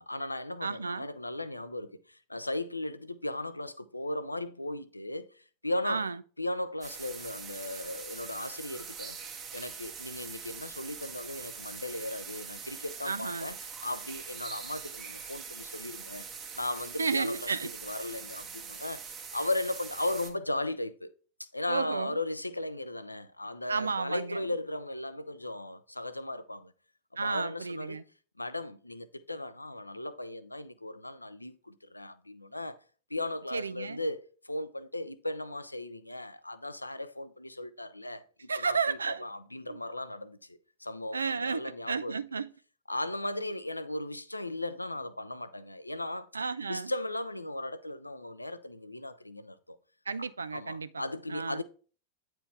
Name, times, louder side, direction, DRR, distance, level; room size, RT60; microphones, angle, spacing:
voice 1, 0.0-6.0 6.4-9.2 9.5-13.6 13.8-16.3 16.5-17.6 17.8-21.1 21.4-26.7 27.2-28.0 28.4-32.8 33.1-42.2 42.9-46.3 46.7-49.8 50.5-51.6, left 1 dB, 85° left, 0.5 m, -37 dB
voice 2, 0.6-1.1 5.8-6.2 13.0-13.5 17.0-17.7 21.7-22.2 23.7-24.4 27.2-28.0 33.5-34.0 38.5-39.3 39.7-39.8 41.1-42.5 46.3-46.9 50.1-51.6, right 5 dB, 75° right, 0.3 m, -32 dB
sound 1, 6.8-20.3, right 6 dB, 30° right, 1.2 m, -43 dB
9.0 x 4.4 x 3.3 m
figure-of-eight pair, 90°, 0 cm